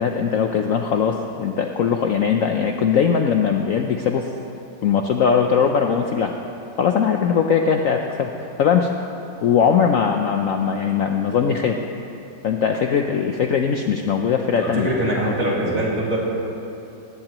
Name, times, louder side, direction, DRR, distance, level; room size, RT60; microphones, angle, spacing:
voice 1, 0.0-4.3 4.8-6.3 6.8-8.3 8.6-8.9 9.4-11.8 12.4-14.9 15.2-15.4, left 7 dB, 65° left, 3 dB, 0.9 m, -20 dB
voice 2, 14.6-16.2, right 1 dB, 45° right, -6 dB, 3.2 m, -23 dB
19.0 x 15.5 x 3.0 m, 2.7 s
omnidirectional pair, 2.0 m